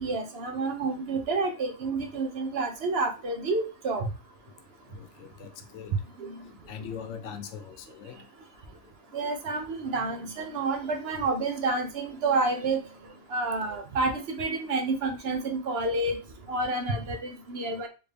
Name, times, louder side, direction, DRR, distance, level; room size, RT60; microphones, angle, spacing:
voice 1, 0.0-4.1 6.2-6.3 9.1-12.8 13.3-16.2 16.5-17.9, right 3 dB, 60° right, 0.9 m, -29 dB
voice 2, 4.9-5.9 6.7-8.2, left 7 dB, 80° left, 0.9 m, -41 dB
3.6 x 2.6 x 3.3 m
omnidirectional pair, 1.2 m